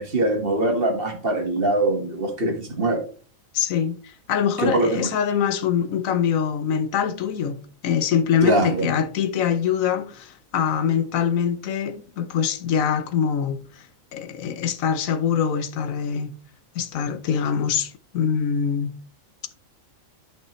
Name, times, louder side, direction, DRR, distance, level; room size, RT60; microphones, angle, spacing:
voice 1, 0.0-3.0 4.6-5.1 8.4-8.9, right 2 dB, 45° right, 1.6 m, -22 dB
voice 2, 3.5-13.8 14.1-16.3 16.8-18.9, left 7 dB, 80° left, 1.1 m, -24 dB
10.0 x 5.5 x 3.0 m
omnidirectional pair, 1.4 m